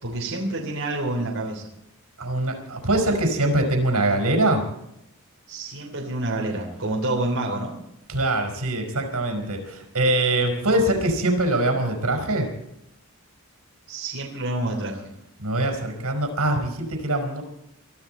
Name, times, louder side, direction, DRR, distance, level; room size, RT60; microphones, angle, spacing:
voice 1, 0.0-1.7 5.5-7.7 13.9-15.1, right 2 dB, 65° right, -2 dB, 3.2 m, -28 dB
voice 2, 2.2-4.7 8.1-12.5 15.4-17.4, right 1 dB, 85° right, 4 dB, 4.8 m, -23 dB
23.0 x 13.5 x 4.4 m, 0.81 s
head